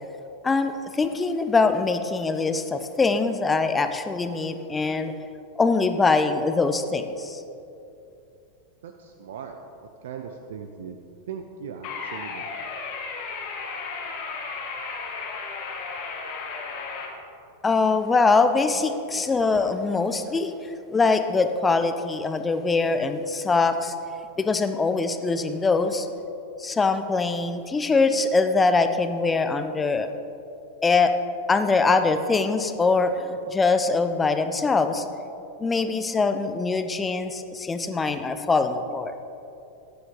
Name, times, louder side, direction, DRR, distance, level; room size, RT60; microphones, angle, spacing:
voice 1, 0.4-5.1 5.6-7.4 17.6-20.5 20.9-23.9 24.4-26.1 26.6-30.1 30.8-31.1 31.5-35.1 35.6-39.1, left 4 dB, 15° left, 9 dB, 0.7 m, -23 dB
voice 2, 8.8-9.6 10.0-11.0 11.3-12.5, right 7 dB, 60° right, 5 dB, 0.7 m, -38 dB
sound 1, 11.8-17.1, left 4 dB, 45° left, 1.7 m, -34 dB
15.0 x 10.5 x 3.9 m, 2.8 s
figure-of-eight pair, 90°, 0 cm